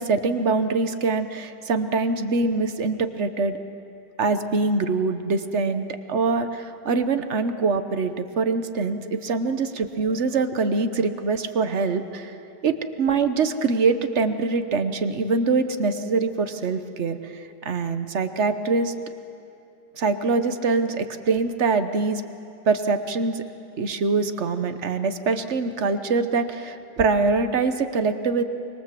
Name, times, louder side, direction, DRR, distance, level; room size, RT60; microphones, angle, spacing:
voice 1, 0.0-3.6 4.2-12.4 12.6-18.9 20.0-22.2 22.7-23.4 23.8-28.4, right 4 dB, 45° right, 9 dB, 1.1 m, -24 dB
25.5 x 22.0 x 7.6 m, 2.6 s
omnidirectional pair, 2.0 m